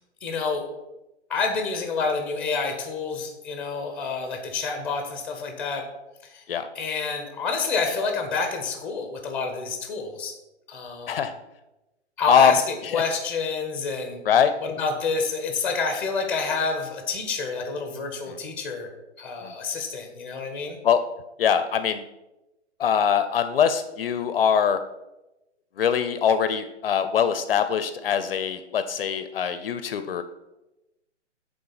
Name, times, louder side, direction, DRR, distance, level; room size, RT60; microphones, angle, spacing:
voice 1, 0.2-0.6 1.3-5.8 6.3-6.4 6.7-10.3 10.7-11.2 12.2-14.2 14.6-18.9 19.2-20.8, left 4 dB, 5° left, 4 dB, 0.6 m, -28 dB
voice 2, 12.3-12.6 12.8-13.0 14.3-14.5 18.3-18.4 19.4-19.5 20.8-21.0 21.4-22.0 22.8-24.8 25.8-30.2, left 7 dB, 55° left, 10 dB, 0.5 m, -22 dB
8.6 x 3.7 x 4.0 m, 0.97 s
hypercardioid pair, 140°, 36 cm